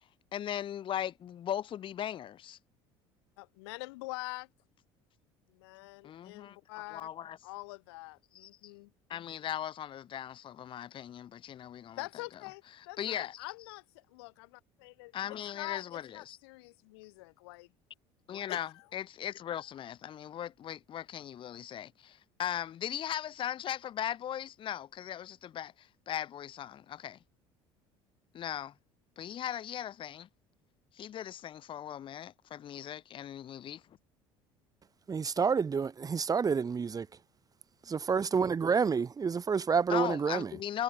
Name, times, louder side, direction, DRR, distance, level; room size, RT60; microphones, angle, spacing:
voice 1, 0.3-2.6 6.0-6.6 6.9-7.4 8.3-8.5 9.1-12.0 13.0-13.4 15.1-16.4 18.3-27.2 28.3-28.7 29.2-30.3 31.0-33.8 39.9-40.8, left 10 dB, 40° left, 0.6 m, -38 dB
voice 2, 3.4-4.5 5.5-7.1 7.4-8.9 12.0-17.7 18.5-18.8, left 25 dB, 80° left, 3.6 m, -45 dB
voice 3, 35.1-37.1 37.8-40.6, right 6 dB, 30° right, 1.4 m, -29 dB
hypercardioid pair, 75°, 13 cm